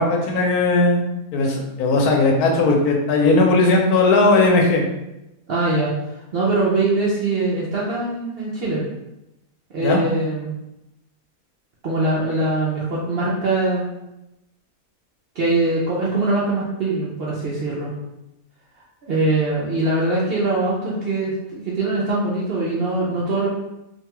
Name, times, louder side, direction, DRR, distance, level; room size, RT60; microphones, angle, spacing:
voice 1, 0.0-4.8 9.8-10.0, left 2 dB, 80° left, 0 dB, 1.1 m, -17 dB
voice 2, 5.5-5.9 6.3-8.8 9.7-10.5 11.8-13.9 15.4-17.9 19.1-23.5, right 2 dB, 60° right, -6 dB, 0.6 m, -22 dB
2.7 x 2.2 x 2.9 m, 0.92 s
omnidirectional pair, 1.5 m